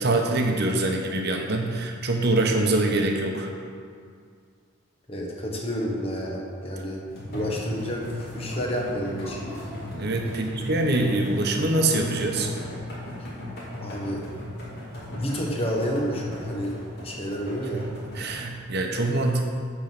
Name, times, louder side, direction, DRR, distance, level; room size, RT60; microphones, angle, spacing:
voice 1, 0.0-3.5 9.9-12.5 17.7-19.4, right 2 dB, 50° right, 2 dB, 0.9 m, -24 dB
voice 2, 5.1-7.0 7.3-9.4 13.2-13.3 13.8-14.2 15.1-16.7 17.0-17.9, equal, 30° left, -1 dB, 1.1 m, -30 dB
sound 1, 7.1-18.3, left 1 dB, 50° left, 2.3 m, -37 dB
8.9 x 4.6 x 6.0 m, 2.2 s
head